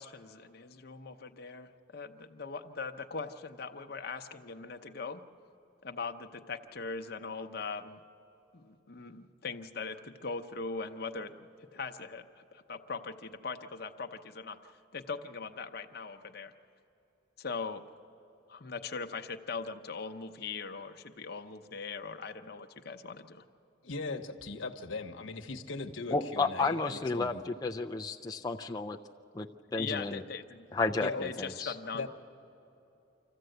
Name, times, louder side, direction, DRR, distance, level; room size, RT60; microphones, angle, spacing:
voice 1, 0.0-5.2 5.8-8.0 8.5-16.5 17.4-17.8 18.5-23.4 29.8-30.7 31.2-32.1, left 4 dB, 55° left, 6 dB, 0.8 m, -40 dB
voice 2, 23.8-27.4 31.0-31.2 31.9-32.1, left 3 dB, 85° left, 6 dB, 1.0 m, -39 dB
voice 3, 26.1-29.0 29.3-29.5 29.7-30.2 30.7-31.7, left 3 dB, 20° left, 2 dB, 0.4 m, -32 dB
26.0 x 14.5 x 7.9 m, 2.9 s
head